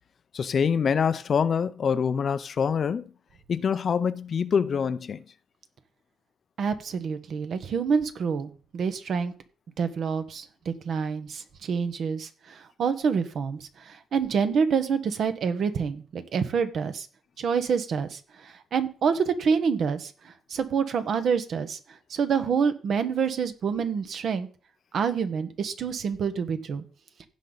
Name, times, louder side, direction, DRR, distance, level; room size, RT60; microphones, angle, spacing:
voice 1, 0.3-3.1 3.5-5.2, left 6 dB, 50° left, 0.6 m, -25 dB
voice 2, 6.6-9.3 9.8-12.3 12.8-17.1 17.4-18.2 18.4-20.1 20.5-21.8 22.1-24.5 24.9-26.8, right 6 dB, 60° right, 1.3 m, -27 dB
16.0 x 5.3 x 4.1 m
cardioid pair, 90°, 0 cm